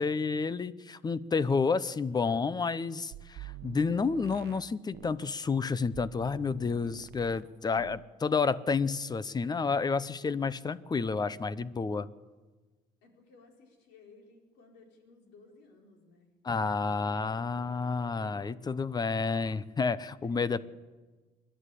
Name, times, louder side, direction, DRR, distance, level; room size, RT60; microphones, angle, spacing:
voice 1, 0.0-12.1 16.4-20.7, left 4 dB, 25° left, 18 dB, 0.7 m, -30 dB
sound 1, 3.1-5.3 5.9-7.5 7.8-8.1, right 13 dB, 75° right, 0.8 m, -47 dB
voice 2, 13.0-16.3 20.2-20.7, left 3 dB, 90° left, 2 dB, 4.4 m, -58 dB
28.5 x 11.5 x 8.4 m, 1.3 s
cardioid pair, 110°, 17 cm